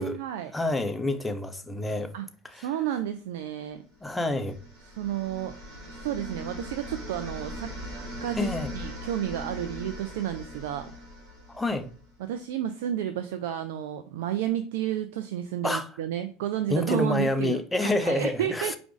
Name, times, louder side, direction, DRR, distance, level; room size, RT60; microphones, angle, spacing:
voice 1, 0.0-0.5 2.1-2.3 2.5-3.8 5.0-5.5 5.9-7.7 8.2-10.9 12.2-18.8, right 11 dB, 75° right, 0.3 m, -31 dB
voice 2, 0.5-2.1 2.4-2.7 4.0-4.6 8.3-8.7 11.5-11.9 15.6-15.9 16.7-18.8, left 2 dB, 10° left, 0.6 m, -28 dB
sound 1, 4.1-12.1, equal, 60° right, 2.0 m, -40 dB
4.8 x 2.5 x 3.5 m
hypercardioid pair, 90°, 0 cm